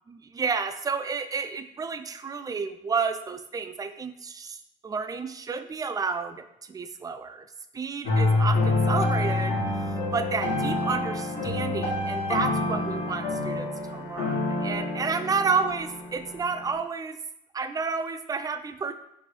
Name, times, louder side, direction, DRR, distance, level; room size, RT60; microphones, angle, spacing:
voice 1, 0.1-4.6 4.8-7.5 7.7-17.2 17.5-18.9, right 5 dB, 20° right, 9 dB, 0.3 m, -31 dB
sound 1, 8.0-16.7, left 2 dB, 70° left, 1.6 m, -27 dB
5.3 x 2.6 x 3.1 m, 0.81 s
cardioid pair, 110°, 17 cm